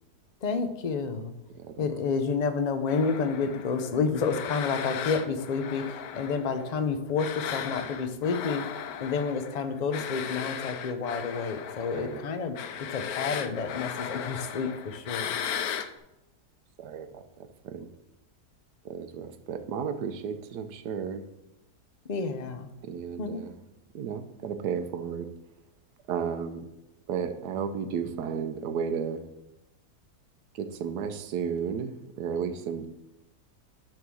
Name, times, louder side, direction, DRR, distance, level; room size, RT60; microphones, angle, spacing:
voice 1, 0.4-1.3 1.8-8.6 9.0-15.4 22.0-22.7 23.2-23.4, left 5 dB, 50° left, 8 dB, 0.5 m, -30 dB
voice 2, 1.5-1.9 11.9-12.2 16.8-17.9 18.8-21.2 22.8-23.6 23.9-25.3 26.1-26.7 27.1-29.2 30.5-32.9, right 7 dB, 90° right, 9 dB, 1.3 m, -33 dB
sound 1, 2.9-6.8 7.2-15.9, left 8 dB, 70° left, 1.1 m, -36 dB
10.5 x 3.7 x 6.2 m, 0.94 s
omnidirectional pair, 1.7 m